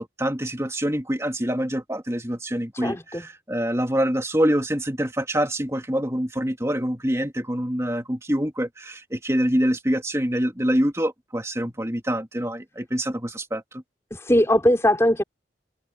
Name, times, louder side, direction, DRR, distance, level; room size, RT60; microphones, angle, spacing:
voice 1, 0.0-13.8, equal, 15° right, 2.9 m, -25 dB
voice 2, 2.7-3.3 14.1-15.2, equal, 15° left, 4.5 m, -20 dB
head